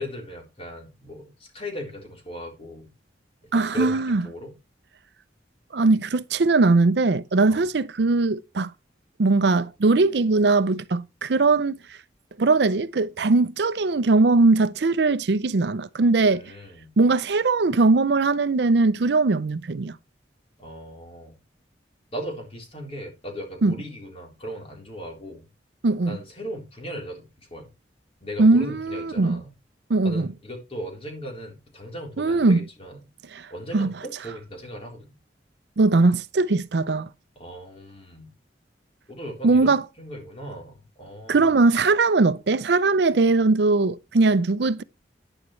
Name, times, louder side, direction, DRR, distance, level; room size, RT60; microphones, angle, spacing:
voice 1, 0.0-2.9 3.5-4.5 7.5-7.7 16.3-16.9 20.6-21.4 22.1-25.5 26.1-27.7 28.2-29.5 30.0-33.0 33.5-35.2 37.4-38.3 39.1-41.6, equal, 35° left, 3.6 m, -38 dB
voice 2, 3.5-4.2 5.7-8.7 9.2-11.8 12.4-16.4 17.0-20.0 23.6-23.8 25.8-26.2 28.4-29.4 29.9-30.3 32.2-32.6 33.3-33.5 33.7-33.9 35.8-37.1 39.4-39.8 41.3-44.8, right 3 dB, 65° right, 0.5 m, -20 dB
11.0 x 9.9 x 3.2 m
head